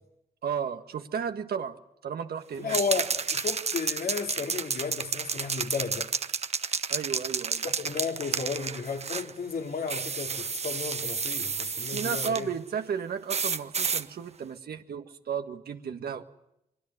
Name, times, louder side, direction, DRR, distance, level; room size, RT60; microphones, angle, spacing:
voice 1, 0.4-2.8 6.9-7.7 11.9-16.3, right 7 dB, 75° right, 1.6 m, -34 dB
voice 2, 2.6-6.1 7.6-12.5, left 5 dB, 65° left, 2.9 m, -33 dB
sound 1, 2.7-9.3 9.9-12.4 13.3-14.0, right 5 dB, 40° right, 1.0 m, -31 dB
23.5 x 23.0 x 7.9 m
wide cardioid pair, 115°, 16 cm